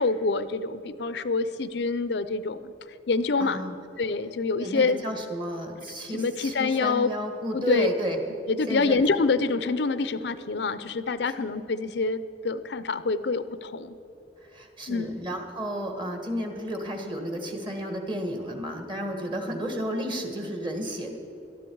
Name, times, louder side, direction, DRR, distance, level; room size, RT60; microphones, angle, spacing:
voice 1, 0.0-2.7 3.1-3.6 4.0-5.0 6.1-7.1 7.5-7.9 8.5-14.0 14.9-15.1, left 4 dB, 65° left, 13 dB, 0.5 m, -26 dB
voice 2, 3.4-3.7 4.6-8.2 8.7-9.0 11.2-11.3 14.5-21.2, equal, 25° right, 4 dB, 1.6 m, -32 dB
18.5 x 13.0 x 4.7 m, 3.0 s
head